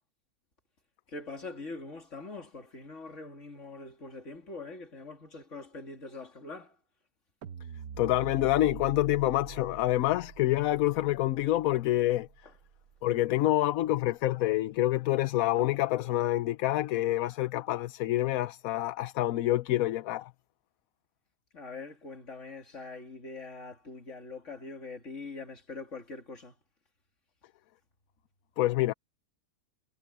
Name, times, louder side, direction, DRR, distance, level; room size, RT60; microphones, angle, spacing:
voice 1, 1.1-6.7 21.5-26.5, left 3 dB, 55° left, 3.1 m, -43 dB
sound 1, 7.4-13.7, right 7 dB, 85° right, 1.4 m, -46 dB
voice 2, 8.0-12.3 13.0-20.3 28.6-28.9, left 15 dB, 80° left, 1.0 m, -27 dB
omnidirectional pair, 1.5 m